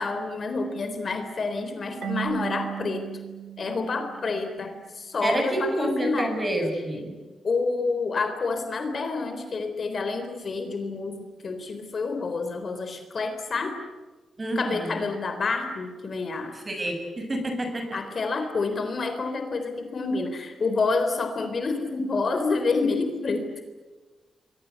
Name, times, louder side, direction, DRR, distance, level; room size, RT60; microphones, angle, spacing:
voice 1, 0.0-3.1 3.6-6.4 7.4-13.8 14.6-16.6 17.9-23.5, left 3 dB, 45° left, 7 dB, 3.8 m, -28 dB
Marimba xylophone / Wood, 2.0-4.8, right 11 dB, 75° right, 1.6 m, -36 dB
voice 2, 5.2-7.2 14.4-15.0 16.7-18.0, right 1 dB, 25° right, 5 dB, 6.8 m, -28 dB
27.5 x 23.5 x 8.4 m, 1.3 s
wide cardioid pair, 130°, 0 cm